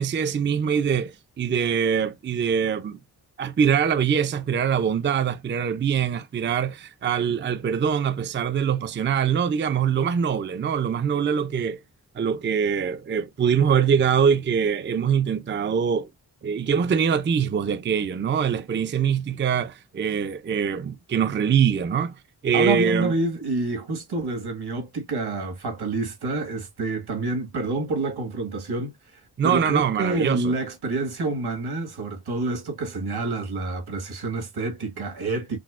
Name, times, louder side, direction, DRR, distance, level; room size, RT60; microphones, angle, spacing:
voice 1, 0.0-3.0 3.4-11.8 12.1-16.1 16.4-22.1 22.4-23.1 29.4-30.5, right 7 dB, 30° right, 0.4 m, -23 dB
voice 2, 22.5-28.9 29.4-35.6, right 3 dB, 80° right, 1.7 m, -28 dB
6.0 x 2.0 x 2.4 m
wide cardioid pair, 115°, 38 cm